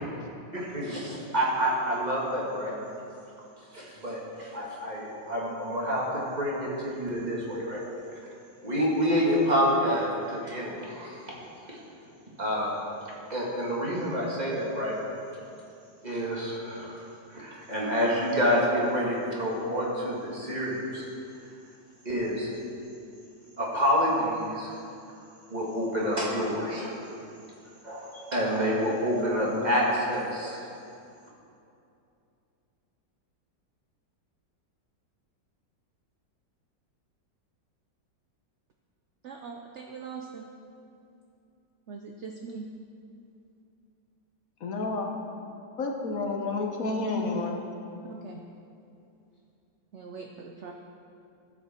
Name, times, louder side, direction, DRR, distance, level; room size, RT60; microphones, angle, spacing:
voice 1, 0.5-2.7 3.7-7.8 8.6-11.3 11.7-11.8 12.4-12.9 13.3-14.9 16.0-17.0 17.3-21.0 22.1-22.5 23.6-24.7 25.5-27.0 27.8-30.6, equal, 25° right, -5 dB, 1.9 m, -28 dB
voice 2, 39.2-40.5 41.9-42.7 48.1-48.4 49.9-50.7, right 5 dB, 75° right, 2 dB, 0.6 m, -41 dB
voice 3, 44.6-45.2 45.8-47.6, left 3 dB, 55° left, 2 dB, 1.2 m, -30 dB
13.5 x 7.4 x 4.4 m, 2.6 s
omnidirectional pair, 1.9 m